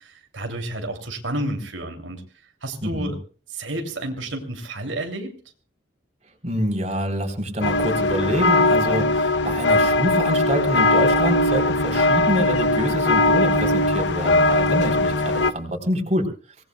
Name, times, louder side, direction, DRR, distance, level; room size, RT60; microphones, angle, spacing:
voice 1, 0.0-2.2 2.6-3.2 3.5-5.4, right 1 dB, 90° right, 3 dB, 3.0 m, -30 dB
voice 2, 2.8-3.1 6.4-16.3, equal, 35° right, 2 dB, 3.9 m, -26 dB
sound 1, 7.6-15.5, left 2 dB, 65° left, 0.8 m, -20 dB
25.5 x 19.0 x 2.3 m, 0.37 s
head